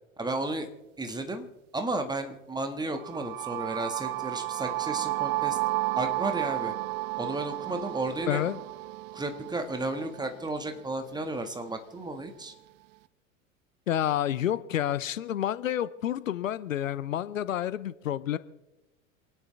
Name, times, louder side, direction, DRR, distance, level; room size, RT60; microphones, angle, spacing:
voice 1, 0.2-0.7 1.0-1.5 1.7-5.6 6.0-6.7 7.2-8.4 9.1-12.5, right 2 dB, 10° right, 6 dB, 1.7 m, -33 dB
sound 1, 2.9-10.8, right 20 dB, 30° right, 0.4 m, -33 dB
voice 2, 8.3-8.6 13.9-18.4, left 11 dB, 70° left, 16 dB, 0.7 m, -29 dB
28.0 x 10.0 x 3.4 m, 1.1 s
figure-of-eight pair, 80°, 40 cm